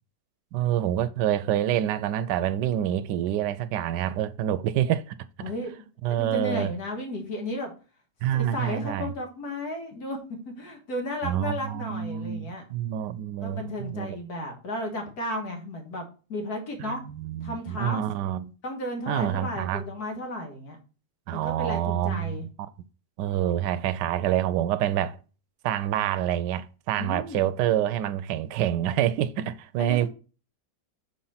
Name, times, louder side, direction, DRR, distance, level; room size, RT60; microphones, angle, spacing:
voice 1, 0.5-5.2 6.0-6.7 8.2-9.1 11.2-14.2 16.8-18.5 19.1-19.8 21.3-22.7 23.2-25.2 25.6-30.1, right 11 dB, 85° right, 1.2 m, -27 dB
voice 2, 5.4-5.7 6.1-7.7 8.3-10.2 10.5-12.7 13.4-17.0 17.4-18.0 18.6-20.8 21.3-22.5 27.0-27.5 29.8-30.1, left 1 dB, 65° left, 2.1 m, -34 dB
6.5 x 4.3 x 5.6 m
omnidirectional pair, 1.8 m